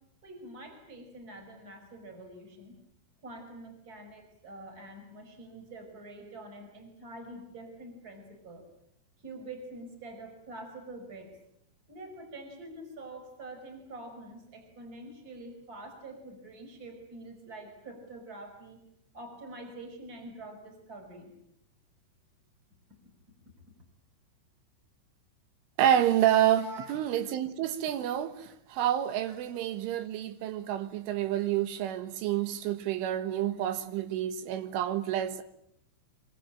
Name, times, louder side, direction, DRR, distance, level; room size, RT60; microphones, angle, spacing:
voice 1, 0.2-2.8 3.2-8.6 9.2-11.3 11.9-18.8 19.1-21.3 26.5-26.9 29.3-29.4, right 2 dB, 20° right, 5.6 m, -46 dB
voice 2, 25.8-35.4, right 11 dB, 80° right, 3.7 m, -28 dB
25.5 x 24.0 x 8.8 m
omnidirectional pair, 5.6 m